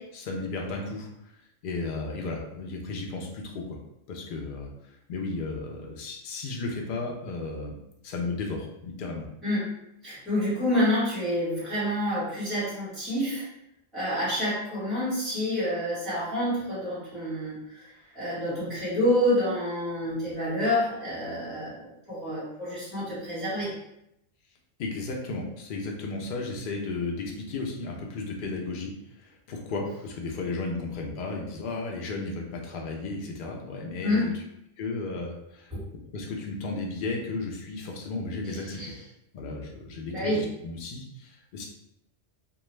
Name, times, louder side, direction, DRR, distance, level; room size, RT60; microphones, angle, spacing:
voice 1, 0.1-1.1 1.6-3.8 4.1-4.7 5.1-7.8 8.0-9.3 24.8-34.3 34.8-35.7 36.0-38.8 39.3-41.7, left 3 dB, 55° left, 0 dB, 0.6 m, -34 dB
voice 2, 9.4-9.7 10.0-13.4 13.9-17.9 18.1-23.7 34.0-34.3 35.7-35.9 38.4-38.9 40.1-40.5, left 1 dB, ahead, -9 dB, 1.2 m, -28 dB
2.3 x 2.3 x 3.1 m, 0.80 s
omnidirectional pair, 1.3 m